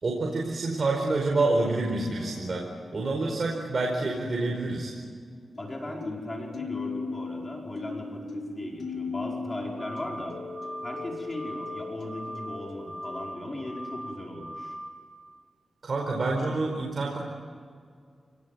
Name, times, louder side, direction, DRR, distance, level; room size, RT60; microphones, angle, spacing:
voice 1, 0.0-4.9 15.8-17.2, right 2 dB, 55° right, 0 dB, 4.7 m, -27 dB
sound 1, 2.2-3.0 5.6-13.3, left 4 dB, 85° left, 2.5 m, -38 dB
voice 2, 5.6-10.4 10.8-14.8, left 1 dB, 30° left, -1 dB, 5.0 m, -37 dB
sound 2, 9.8-10.3 10.5-11.0 11.3-11.8 12.1-12.6 12.9-13.4 13.6-14.1 14.4-14.9, equal, 25° right, 5.8 m, -39 dB
29.5 x 18.5 x 9.3 m, 2.1 s
cardioid pair, 55°, 0 cm